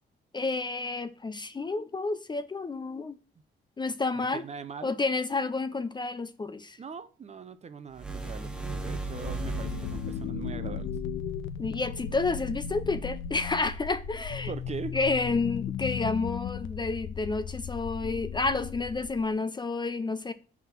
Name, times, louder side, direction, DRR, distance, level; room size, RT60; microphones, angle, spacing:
voice 1, 0.3-3.2 3.8-4.4 4.8-6.8 11.6-14.5 14.9-20.3, left 3 dB, 20° left, 0.5 m, -30 dB
voice 2, 4.3-4.9 6.8-10.9 14.5-15.0, right 5 dB, 35° right, 0.6 m, -41 dB
sound 1, 7.9-10.3, right 3 dB, 5° right, 0.9 m, -36 dB
sound 2, 8.8-19.3, left 7 dB, 80° left, 0.6 m, -36 dB
5.5 x 3.6 x 5.8 m
cardioid pair, 90°, 20 cm